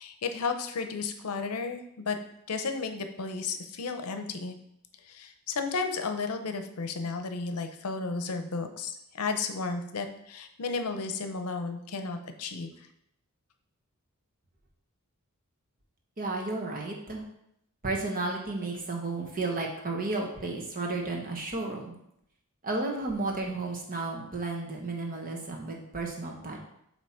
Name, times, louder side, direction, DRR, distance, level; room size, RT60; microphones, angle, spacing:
voice 1, 0.0-2.2 2.5-4.6 5.0-12.7, left 4 dB, 75° left, 7 dB, 0.6 m, -33 dB
voice 2, 16.2-17.2 17.8-21.9 22.6-26.6, right 3 dB, 40° right, 0 dB, 1.1 m, -33 dB
7.6 x 2.9 x 4.4 m, 0.76 s
head